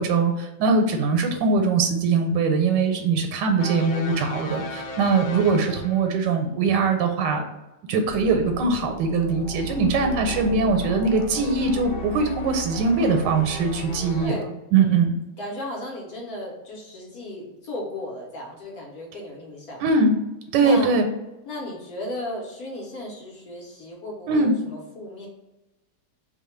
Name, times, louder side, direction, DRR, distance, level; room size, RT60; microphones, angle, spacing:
voice 1, 0.0-7.4 7.9-14.4 14.7-15.2 19.8-20.2 20.5-21.0 24.3-24.5, right 4 dB, 85° right, 5 dB, 1.2 m, -21 dB
sound 1, 3.6-6.3 8.0-14.3, right 1 dB, 80° left, 0.6 m, -35 dB
voice 2, 14.2-15.0 15.4-19.9 20.6-20.9 21.4-25.3, left 1 dB, 65° left, -2 dB, 1.2 m, -35 dB
3.0 x 2.2 x 4.2 m, 0.98 s
omnidirectional pair, 1.9 m